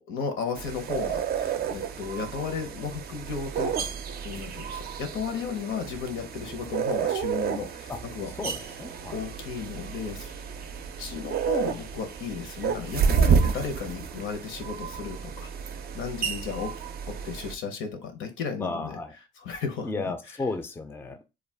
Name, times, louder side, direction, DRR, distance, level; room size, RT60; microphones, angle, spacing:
voice 1, 0.0-3.9 4.2-8.3 9.1-10.3 11.0-15.5 15.9-16.8 17.1-19.0 19.4-20.4, left 5 dB, 80° left, 0.8 m, -34 dB
sound 1, 0.5-17.5, right 7 dB, 50° right, 0.4 m, -30 dB
voice 2, 8.4-9.1 18.6-19.1 19.8-21.2, left 3 dB, 10° left, 0.4 m, -33 dB
2.4 x 2.2 x 3.3 m
cardioid pair, 90°, 20 cm